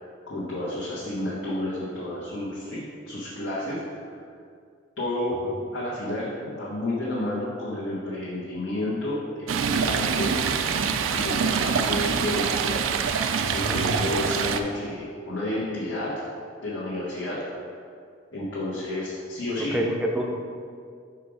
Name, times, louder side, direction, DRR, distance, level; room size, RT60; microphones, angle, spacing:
voice 1, 0.3-4.0 5.0-5.4 5.7-10.3 10.8-12.8 13.5-16.2 16.6-17.4 18.3-19.8, left 1 dB, 65° left, -9 dB, 1.4 m, -31 dB
Stream, 9.5-14.6, right 6 dB, 80° right, 0.4 m, -25 dB
voice 2, 13.6-14.4 19.6-20.3, equal, 5° right, 0 dB, 0.5 m, -29 dB
6.1 x 4.7 x 4.9 m, 2.3 s
head